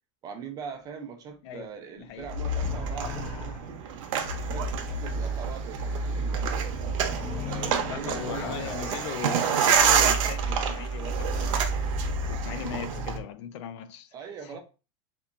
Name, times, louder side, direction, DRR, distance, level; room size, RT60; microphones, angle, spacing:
voice 1, 0.2-4.2 4.5-4.7 5.0-7.0 7.5-9.0 14.1-14.6, right 6 dB, 25° right, 0.4 m, -41 dB
voice 2, 2.0-2.3 7.9-11.7 12.3-14.1 14.4-14.6, left 9 dB, 65° left, 0.4 m, -38 dB
sound 1, 2.2-13.2, right 1 dB, 35° left, 0.8 m, -32 dB
sound 2, 2.3-13.2, right 7 dB, 90° right, 0.5 m, -29 dB
2.8 x 2.2 x 2.3 m
supercardioid pair, 155°, 16 cm